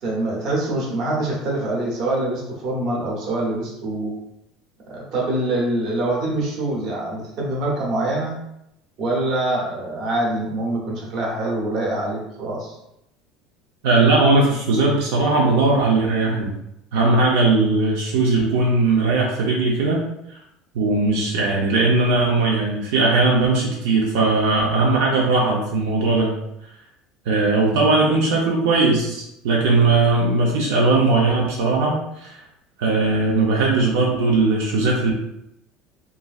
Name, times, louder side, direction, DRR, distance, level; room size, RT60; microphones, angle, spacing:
voice 1, 0.0-4.1 4.9-8.4 9.0-12.8, right 2 dB, 40° right, -3 dB, 0.8 m, -24 dB
voice 2, 13.8-16.5 16.9-20.0 20.3-20.4 20.7-26.3 27.3-32.4 32.8-35.1, right 3 dB, 80° right, -2 dB, 0.5 m, -19 dB
3.0 x 2.5 x 2.3 m, 0.82 s
cardioid pair, 175°, 0 cm